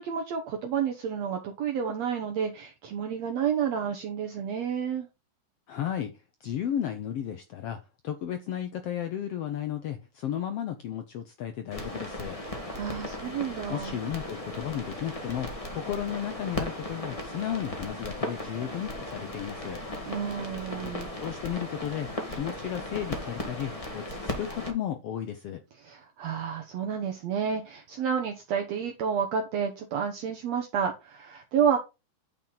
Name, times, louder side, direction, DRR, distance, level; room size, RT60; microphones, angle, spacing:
voice 1, 0.0-5.1 12.7-14.0 20.1-21.1 25.8-31.8, right 7 dB, 65° right, 2.0 m, -30 dB
voice 2, 5.7-6.1 6.4-7.8 8.0-12.4 13.7-19.8 21.1-25.6, left 10 dB, 75° left, 1.4 m, -34 dB
sound 1, 11.7-24.7, left 1 dB, 15° left, 1.1 m, -36 dB
9.0 x 5.9 x 4.0 m
omnidirectional pair, 3.6 m